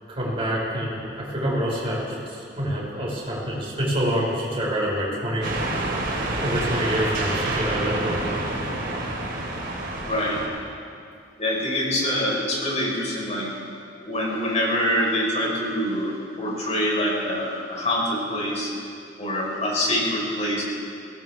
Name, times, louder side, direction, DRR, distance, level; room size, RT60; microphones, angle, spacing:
voice 1, 0.1-5.5 6.4-8.2, equal, 30° right, -6 dB, 5.4 m, -26 dB
sound 1, 5.4-10.5, right 2 dB, 60° right, 3.8 m, -28 dB
voice 2, 10.1-10.4 11.4-13.5 14.0-18.7 19.2-20.6, equal, 35° left, -3 dB, 4.7 m, -25 dB
22.0 x 18.0 x 3.7 m, 2.4 s
head